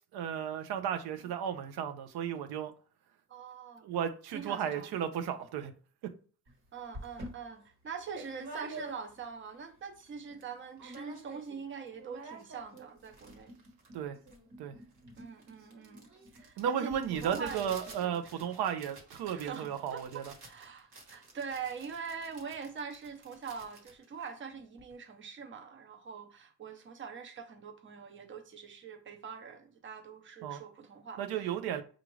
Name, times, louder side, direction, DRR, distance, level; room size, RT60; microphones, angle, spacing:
voice 1, 0.1-2.7 3.8-5.7 13.9-14.2 14.6-14.8 16.6-20.3 30.4-30.6 31.2-31.8, right 9 dB, 90° right, 0.6 m, -34 dB
voice 2, 3.3-3.9 4.3-5.1 6.7-13.6 15.2-16.1 16.3-18.4 19.3-31.8, right 6 dB, 30° right, 0.7 m, -43 dB
sound 1, 6.5-6.6 6.9-9.3 9.7-9.8 10.0-10.5 10.8-11.6 11.9-24.9, right 2 dB, 50° right, 1.3 m, -49 dB
4.8 x 2.5 x 3.1 m
cardioid pair, 145°, 38 cm